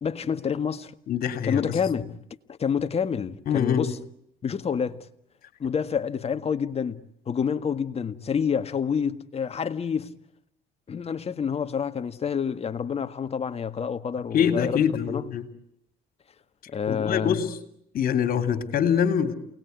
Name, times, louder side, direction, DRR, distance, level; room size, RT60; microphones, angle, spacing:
voice 1, 0.0-0.9 1.4-2.0 2.5-4.0 4.4-5.1 5.6-10.1 10.9-14.8 15.1-15.2 16.7-17.4, left 7 dB, 40° left, 1.7 m, -28 dB
voice 2, 1.1-1.7 3.5-3.9 14.3-15.4 16.9-17.6 17.9-19.3, left 8 dB, 60° left, 3.2 m, -24 dB
28.5 x 19.5 x 9.6 m
cardioid pair, 90°, 17 cm